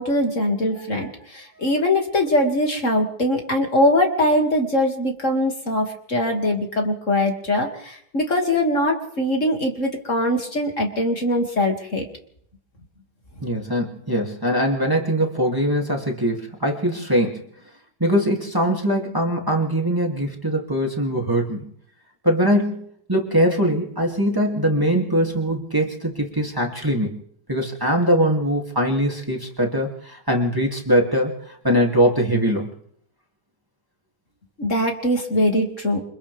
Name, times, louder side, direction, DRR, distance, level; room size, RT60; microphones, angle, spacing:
voice 1, 0.0-12.0 34.6-36.0, left 1 dB, 45° left, 1 dB, 2.9 m, -22 dB
voice 2, 13.4-17.4 18.0-21.7 22.2-27.2 27.5-32.7, equal, 10° right, -1 dB, 2.7 m, -22 dB
28.5 x 25.5 x 3.6 m, 0.68 s
omnidirectional pair, 1.8 m